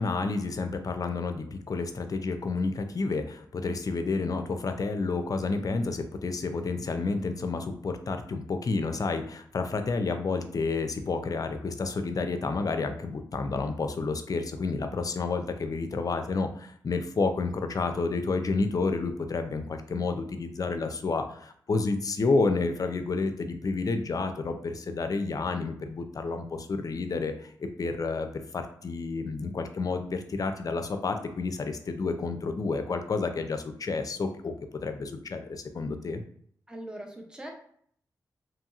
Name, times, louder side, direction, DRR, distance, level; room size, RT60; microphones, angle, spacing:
voice 1, 0.0-28.3 28.5-34.5 34.8-36.2, left 3 dB, 50° left, 7 dB, 0.4 m, -30 dB
voice 2, 36.7-37.5, right 1 dB, 10° right, 1 dB, 0.8 m, -41 dB
2.9 x 2.7 x 2.4 m, 0.62 s
cardioid pair, 50°, 8 cm